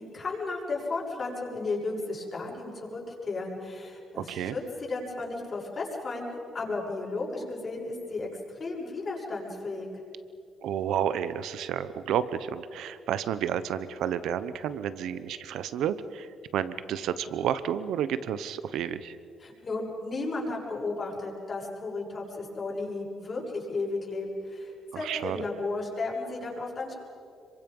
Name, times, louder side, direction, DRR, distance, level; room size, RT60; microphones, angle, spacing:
voice 1, 0.0-9.9 19.4-26.9, left 3 dB, 40° left, -4 dB, 6.9 m, -34 dB
voice 2, 10.6-19.2 24.9-25.4, right 9 dB, 80° right, 14 dB, 1.0 m, -31 dB
26.5 x 24.0 x 5.5 m, 2.5 s
cardioid pair, 90°, 0 cm